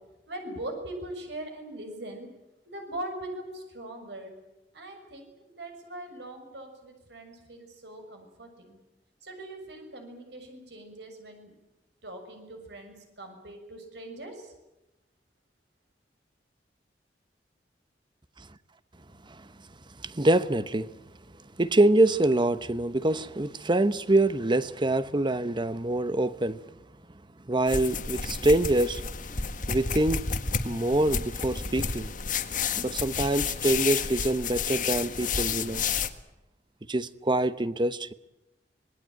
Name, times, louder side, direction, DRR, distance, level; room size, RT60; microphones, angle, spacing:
voice 1, 0.3-2.3 2.7-4.3 4.7-8.8 9.2-11.5 12.0-14.5, right 1 dB, 75° right, 6.6 m, -41 dB
voice 2, 20.0-20.9 21.6-26.6 27.5-29.0 29.7-30.3 30.6-32.1 32.8-35.8 36.9-38.1, right 1 dB, 25° right, 1.0 m, -25 dB
sound 1, 27.7-36.1, left 6 dB, 50° left, 1.6 m, -31 dB
26.0 x 20.5 x 9.0 m
head